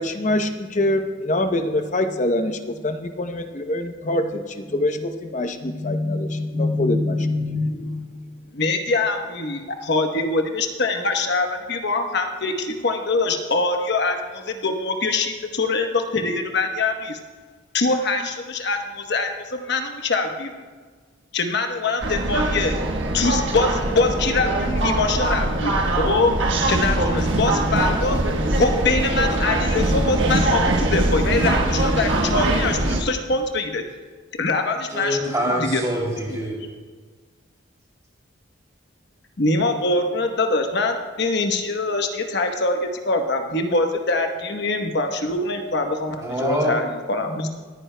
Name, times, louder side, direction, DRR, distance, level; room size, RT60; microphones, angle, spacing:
voice 1, 0.0-8.3, left 1 dB, 40° left, 6 dB, 0.8 m, -24 dB
voice 2, 8.5-17.2 17.7-20.6 21.3-22.8 23.1-26.3 26.7-28.2 28.5-33.8 34.4-35.2 35.6-35.8 39.4-47.5, left 3 dB, 55° left, 4 dB, 1.1 m, -23 dB
sound 1, 22.0-33.0, right 1 dB, 65° right, 1.3 m, -22 dB
voice 3, 34.9-36.6 46.2-46.7, equal, 15° right, -3 dB, 3.1 m, -25 dB
25.0 x 9.6 x 2.2 m, 1.5 s
head